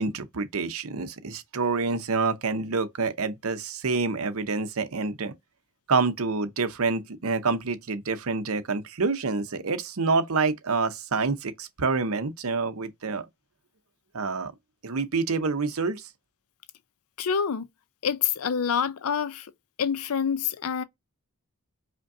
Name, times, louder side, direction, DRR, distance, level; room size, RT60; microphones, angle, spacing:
voice 1, 0.0-5.3 5.9-13.2 14.1-14.5 14.8-16.0, right 4 dB, 75° right, 0.7 m, -27 dB
voice 2, 17.2-17.7 18.0-19.5 19.8-20.8, left 7 dB, 75° left, 0.5 m, -26 dB
5.1 x 2.2 x 2.7 m
head